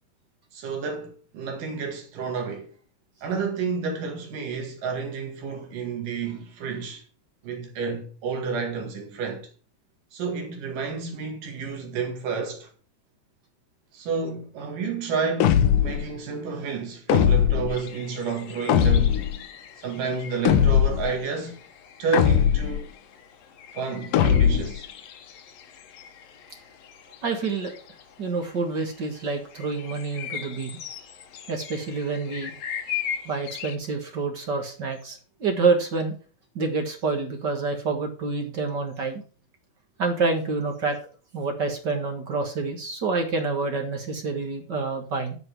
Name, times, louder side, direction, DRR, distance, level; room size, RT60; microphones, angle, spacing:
voice 1, 0.5-2.7 3.2-7.0 7.4-9.5 10.1-12.7 13.9-19.2 19.8-21.6 22.0-22.9 23.7-24.8, right 5 dB, 85° right, 3.6 m, -30 dB
sound 1, 15.4-16.0 17.1-17.8 18.7-19.3 20.4-21.1 22.1-22.8 24.1-24.8, left 9 dB, 85° left, 2.4 m, -19 dB
sound 2, 17.7-33.8, left 9 dB, 65° left, 2.1 m, -40 dB
voice 2, 27.2-27.7 28.2-30.7 31.5-32.5 33.2-36.1 36.5-39.2 40.0-41.0 41.3-45.4, right 4 dB, 45° right, 1.6 m, -27 dB
11.0 x 5.3 x 6.1 m
omnidirectional pair, 3.7 m